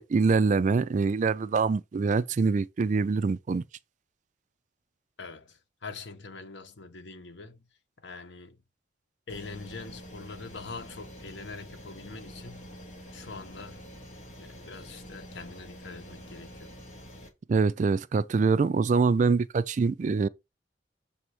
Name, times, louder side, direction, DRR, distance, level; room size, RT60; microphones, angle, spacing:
voice 1, 0.0-3.6 17.5-20.3, right 4 dB, 40° right, 0.3 m, -24 dB
voice 2, 5.2-7.6 8.0-8.6 9.3-12.7 13.1-13.8 14.4-16.7, left 4 dB, 70° left, 1.0 m, -44 dB
sound 1, 9.3-17.3, equal, 40° left, 1.7 m, -46 dB
6.9 x 2.9 x 4.8 m
head